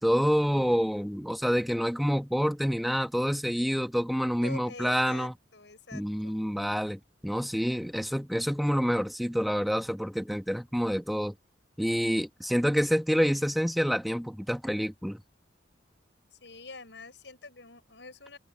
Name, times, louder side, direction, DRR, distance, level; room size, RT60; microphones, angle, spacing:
voice 1, 0.0-5.3 5.9-11.3 11.8-15.2, equal, ahead, 1.4 m, -27 dB
voice 2, 4.4-6.4 16.3-18.4, left 3 dB, 75° left, 6.8 m, -46 dB
head